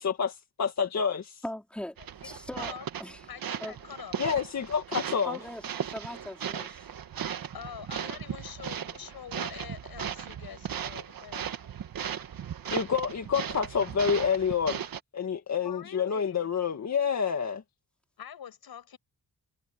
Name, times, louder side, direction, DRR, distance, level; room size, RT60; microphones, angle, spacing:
voice 1, 0.0-1.4 4.2-5.4 12.7-14.8 15.1-17.6, left 6 dB, 50° left, 1.9 m, -28 dB
voice 2, 1.4-2.0 2.2-2.7 3.0-3.2 3.6-3.7 5.2-6.9, left 1 dB, 5° left, 3.1 m, -39 dB
sound 1, 2.0-15.0, right 8 dB, 70° right, 1.6 m, -37 dB
voice 3, 2.2-2.9 3.3-4.2 6.1-6.3 7.5-11.5 15.6-16.4 18.2-19.0, left 8 dB, 85° left, 7.9 m, -45 dB
wide cardioid pair, 150°, 36 cm